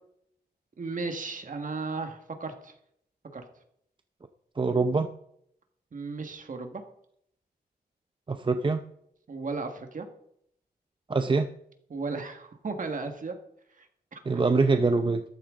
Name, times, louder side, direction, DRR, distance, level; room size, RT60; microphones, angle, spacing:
voice 1, 0.8-2.7 3.3-3.5 5.9-6.8 9.3-10.1 11.9-13.4 13.8-13.9 14.1-14.4, right 4 dB, 50° right, 5 dB, 1.8 m, -35 dB
voice 2, 4.6-5.1 8.3-8.8 11.1-11.5 14.3-15.2, right 3 dB, 30° right, 7 dB, 0.6 m, -24 dB
13.5 x 12.5 x 3.8 m, 0.72 s
wide cardioid pair, 140°, 17 cm